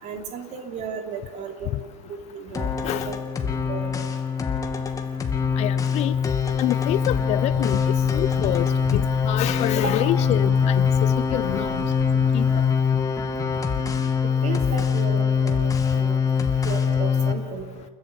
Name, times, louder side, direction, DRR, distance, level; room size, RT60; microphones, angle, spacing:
voice 1, 0.0-3.2 3.7-4.0 9.8-10.1 14.4-16.2 16.6-17.7, right 6 dB, 40° right, 3.1 m, -34 dB
sound 1, 2.5-17.3, left 6 dB, 20° left, 2.4 m, -23 dB
voice 2, 5.6-6.1 6.6-7.8 8.1-8.7 8.9-11.8 12.3-12.5, left 15 dB, 35° left, 0.6 m, -26 dB
sound 2, 7.5-12.7, right 8 dB, 60° right, 1.7 m, -38 dB
29.5 x 13.0 x 7.0 m
hypercardioid pair, 90°, 19 cm